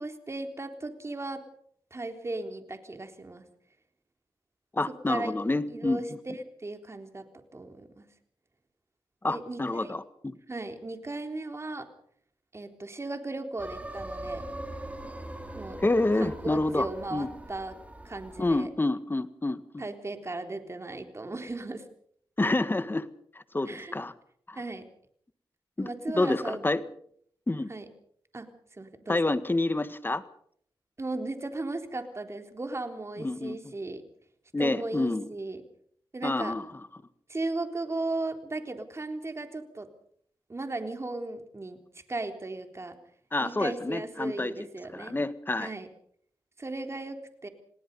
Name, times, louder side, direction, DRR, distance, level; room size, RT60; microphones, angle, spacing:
voice 1, 0.0-1.4 1.9-3.4 5.1-5.3 5.7-6.1 6.3-7.2 7.5-8.1 9.3-10.0 10.5-11.9 12.5-14.4 15.5-15.8 16.2-17.8 18.0-18.7 19.8-21.8 23.7-23.9 24.6-24.8 25.8-26.7 27.7-27.9 28.3-28.5 28.7-29.2 31.0-34.0 34.6-35.6 36.1-36.5 37.3-39.9 40.5-41.8 42.1-43.0 43.4-45.2 45.6-45.9 46.6-47.5, right 2 dB, 30° right, 6 dB, 3.7 m, -36 dB
voice 2, 4.7-6.2 9.2-10.4 15.8-17.3 18.4-19.9 22.4-23.1 23.4-24.1 24.5-24.6 25.8-25.9 26.1-26.8 27.5-27.7 29.1-30.2 33.2-33.6 34.5-35.3 36.2-36.7 43.3-44.5 44.9-45.7, left 2 dB, 25° left, 13 dB, 1.7 m, -28 dB
sound 1, 13.6-18.6, right 1 dB, 15° right, 4.5 m, -41 dB
28.0 x 19.0 x 5.5 m, 0.63 s
cardioid pair, 60°, 9 cm